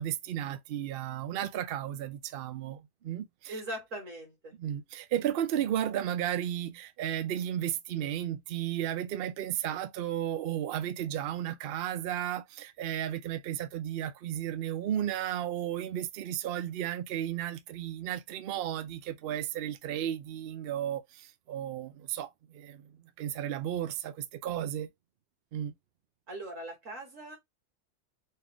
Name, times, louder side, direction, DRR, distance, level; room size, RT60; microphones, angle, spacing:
voice 1, 0.0-3.5 4.6-24.9 25.5-25.7, right 11 dB, 75° right, 0.5 m, -34 dB
voice 2, 3.5-4.5 26.3-27.4, right 1 dB, 55° right, 2.2 m, -40 dB
4.4 x 2.4 x 3.5 m
omnidirectional pair, 1.6 m